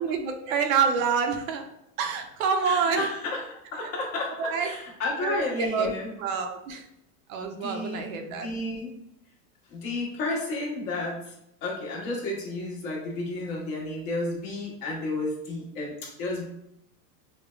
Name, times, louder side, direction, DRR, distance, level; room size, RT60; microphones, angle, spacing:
voice 1, 0.0-1.6 2.0-3.0 4.4-4.7 5.2-6.8 7.3-8.5, right 6 dB, 60° right, 5 dB, 0.6 m, -27 dB
voice 2, 2.6-6.1 7.5-8.9 9.7-11.3 11.6-16.5, left 2 dB, 40° left, -3 dB, 1.2 m, -32 dB
5.1 x 2.1 x 2.2 m, 0.80 s
supercardioid pair, 150°, 46 cm